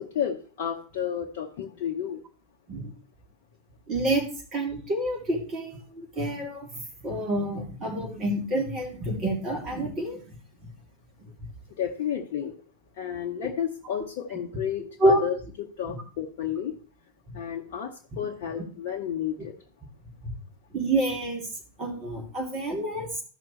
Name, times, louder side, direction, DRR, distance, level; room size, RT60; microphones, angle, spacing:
voice 1, 0.0-2.2 11.8-12.5 12.9-16.7 17.3-19.5, left 9 dB, 50° left, 1 dB, 0.8 m, -32 dB
voice 2, 3.9-4.2 4.5-6.7 7.0-10.2 15.0-15.2 20.7-21.4 21.8-23.2, right 1 dB, 30° right, 0 dB, 2.8 m, -27 dB
14.0 x 5.9 x 3.2 m, 0.41 s
figure-of-eight pair, 90°, 0 cm